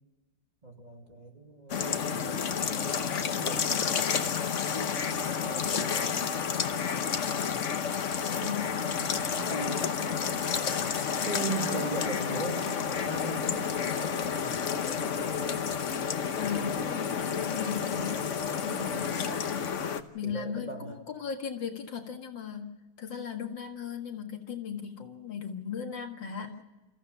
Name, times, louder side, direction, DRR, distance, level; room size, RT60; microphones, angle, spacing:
voice 1, 0.6-4.0 4.3-6.4 8.4-10.5 11.2-15.6 19.6-19.9 20.2-21.0, right 2 dB, 20° right, 2 dB, 2.4 m, -40 dB
sound 1, 1.7-20.0, left 7 dB, 50° left, 1.1 m, -30 dB
voice 2, 8.4-8.7 11.8-11.9 16.3-18.3 18.6-19.2 20.1-22.7 23.0-26.6, left 7 dB, 75° left, 4 dB, 2.5 m, -37 dB
28.5 x 15.0 x 6.9 m, 1.1 s
omnidirectional pair, 2.1 m